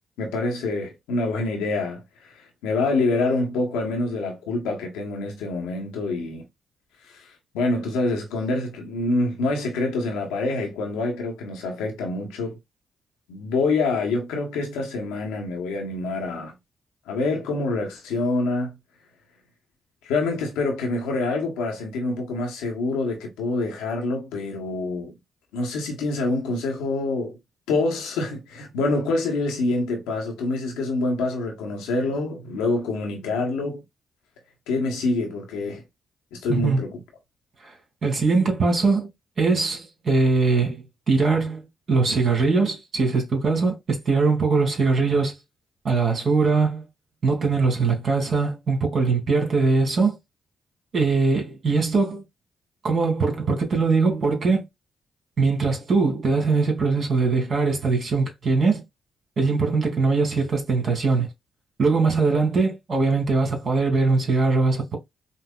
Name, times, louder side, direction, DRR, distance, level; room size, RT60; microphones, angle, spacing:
voice 1, 0.2-2.0 2.4-6.5 7.0-7.3 7.5-12.6 13.3-16.5 17.1-18.8 20.0-25.1 25.5-27.4 27.7-33.8 34.7-35.8 36.3-37.0, left 2 dB, 90° left, 1.0 m, -26 dB
voice 2, 36.5-36.8 37.6-37.7 38.0-39.1 39.4-45.3 45.8-46.8 47.2-50.2 50.9-52.2 52.8-54.7 55.4-58.8 59.4-61.3 61.8-65.0, right 4 dB, 55° right, 1.8 m, -21 dB
5.4 x 2.0 x 2.4 m
supercardioid pair, 50°, 0 cm